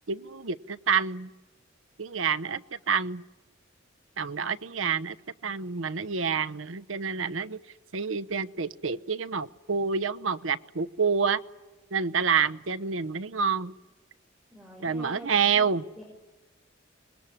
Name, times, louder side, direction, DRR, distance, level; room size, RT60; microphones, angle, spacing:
voice 1, 0.1-1.3 2.0-2.6 2.9-3.2 4.2-5.1 5.4-7.6 7.9-11.4 11.9-13.7 14.8-15.8, right 6 dB, 90° right, 11 dB, 0.9 m, -28 dB
voice 2, 14.5-15.7 16.0-16.1, right 1 dB, ahead, -2 dB, 5.8 m, -46 dB
26.0 x 21.0 x 10.0 m, 1.1 s
head